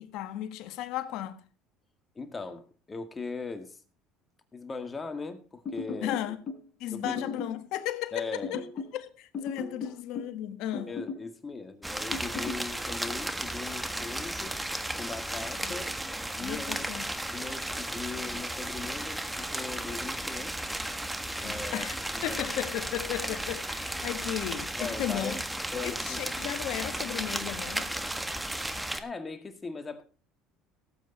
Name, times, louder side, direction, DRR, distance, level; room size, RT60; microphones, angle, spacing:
voice 1, 0.0-1.4 6.0-6.4 6.8-8.6 8.9-10.9 15.6-15.8 16.4-17.1 21.4-22.0 22.2-25.4 25.8-27.9, left 12 dB, 70° left, 1.4 m, -35 dB
voice 2, 2.2-3.8 4.5-6.2 6.9-7.2 8.1-8.6 9.8-10.0 10.9-14.6 14.9-16.0 16.4-16.8 17.3-20.7 21.4-21.9 22.1-22.4 24.0-24.1 24.8-25.4 25.7-26.2 29.0-30.0, left 4 dB, 25° left, 2.0 m, -39 dB
sound 1, 5.7-6.6 7.0-7.6 8.4-9.0 9.3-10.4 10.7-11.3 12.1-12.6, left 4 dB, 45° left, 3.7 m, -37 dB
sound 2, 11.8-29.0, right 1 dB, 5° right, 1.5 m, -34 dB
18.0 x 8.3 x 4.0 m
supercardioid pair, 85°, 0 cm